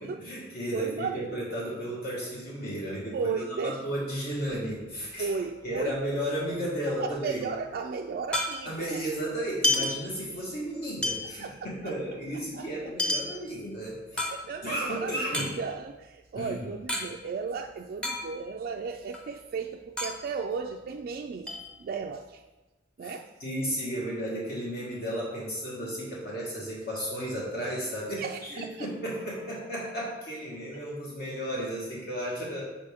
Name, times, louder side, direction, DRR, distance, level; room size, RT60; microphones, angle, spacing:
voice 1, 0.0-3.4 3.6-5.3 5.6-7.5 8.6-14.3 14.6-15.6 16.3-16.8 23.0-23.1 23.4-32.7, equal, 60° left, -5 dB, 1.4 m, -34 dB
voice 2, 0.7-1.4 3.1-3.8 5.2-6.0 7.2-9.0 9.8-9.9 10.6-10.7 11.4-11.6 11.8-11.9 12.5-12.7 14.1-21.5 21.8-22.4 23.0-23.3 28.2-28.9, right 5 dB, 55° right, 2 dB, 0.3 m, -35 dB
sound 1, 4.3-6.0 6.3-6.4 6.6-9.0 9.4-10.6 11.0-14.8 15.2-17.1 17.3-17.4 17.7-18.7 19.0-21.1 21.5-22.3, left 2 dB, 5° left, 0.7 m, -32 dB
6.6 x 4.1 x 3.5 m, 1.1 s
head